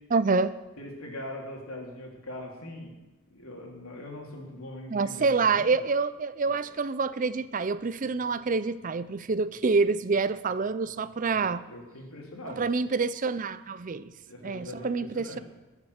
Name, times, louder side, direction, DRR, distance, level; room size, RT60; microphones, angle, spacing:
voice 1, 0.1-0.5 4.9-11.6 12.5-14.1 14.4-15.4, right 4 dB, 35° right, 15 dB, 0.4 m, -27 dB
voice 2, 0.8-2.9 3.3-5.9 6.4-6.6 11.2-12.6 14.2-15.4, left 1 dB, 80° left, 0 dB, 3.4 m, -42 dB
21.0 x 7.3 x 6.5 m, 1.1 s
head